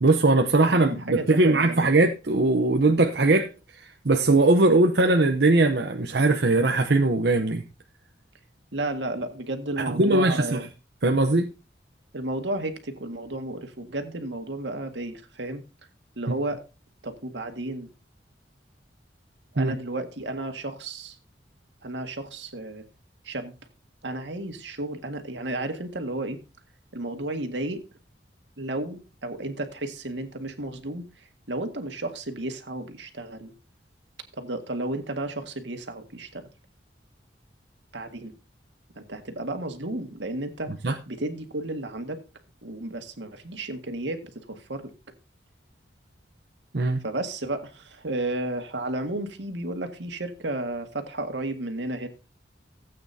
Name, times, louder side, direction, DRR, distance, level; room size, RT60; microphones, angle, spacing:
voice 1, 0.0-7.6 9.8-10.6 11.0-11.5 19.6-19.8 40.8-41.0 46.7-47.0, right 2 dB, 65° right, 0.9 m, -20 dB
voice 2, 0.7-2.0 8.7-10.7 12.1-15.6 16.2-16.6 17.0-17.9 19.5-21.2 21.8-22.9 23.2-23.5 24.0-26.4 26.9-27.8 28.6-33.5 34.4-36.5 37.9-38.3 39.0-40.7 41.1-42.2 42.6-44.9 47.0-52.1, right 2 dB, 85° right, 1.9 m, -33 dB
17.0 x 8.7 x 2.8 m
head